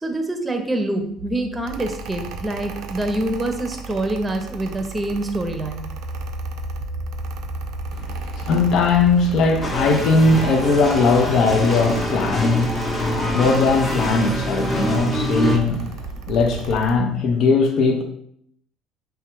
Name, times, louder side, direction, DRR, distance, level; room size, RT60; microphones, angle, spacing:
voice 1, 0.0-5.9, right 1 dB, 15° right, 5 dB, 0.7 m, -25 dB
Mechanical fan, 1.6-17.0, right 4 dB, 70° right, 0.4 m, -35 dB
sound 1, 5.1-14.7, left 1 dB, 80° left, 1.4 m, -36 dB
voice 2, 8.0-18.0, left 3 dB, 60° left, 3 dB, 0.5 m, -19 dB
sound 2, 9.6-15.6, equal, 25° left, 0.8 m, -25 dB
5.4 x 2.2 x 3.0 m, 0.67 s
supercardioid pair, 100°, 0 cm